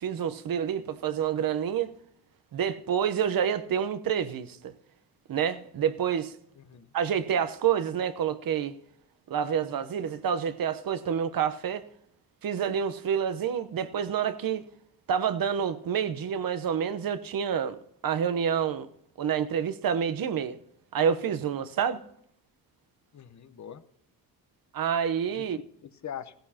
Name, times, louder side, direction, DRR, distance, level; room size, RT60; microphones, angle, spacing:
voice 1, 0.0-1.9 2.5-4.7 5.3-6.4 6.9-8.8 9.3-11.8 12.4-14.6 15.1-17.8 18.0-18.9 19.2-20.6 20.9-22.0 24.7-25.6, right 8 dB, 55° right, 1.0 m, -28 dB
voice 2, 6.6-6.9 23.1-23.8 25.3-26.3, left 9 dB, 45° left, 1.0 m, -43 dB
16.0 x 14.5 x 2.9 m
cardioid pair, 85°, 41 cm